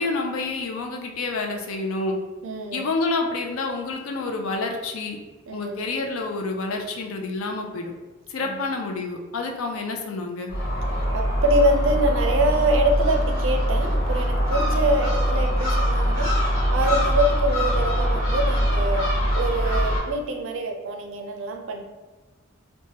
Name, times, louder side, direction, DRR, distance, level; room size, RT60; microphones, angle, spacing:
voice 1, 0.0-2.2 2.7-5.2 5.5-7.9 8.3-10.5, left 3 dB, 75° left, 3 dB, 0.4 m, -28 dB
voice 2, 2.4-2.9 5.5-5.8 8.4-8.7 11.1-16.3 16.7-21.8, right 1 dB, 65° right, 3 dB, 0.4 m, -25 dB
Gull seagull, 10.5-20.0, equal, 60° left, 1.2 m, -23 dB
3.1 x 2.2 x 2.8 m, 1.2 s
head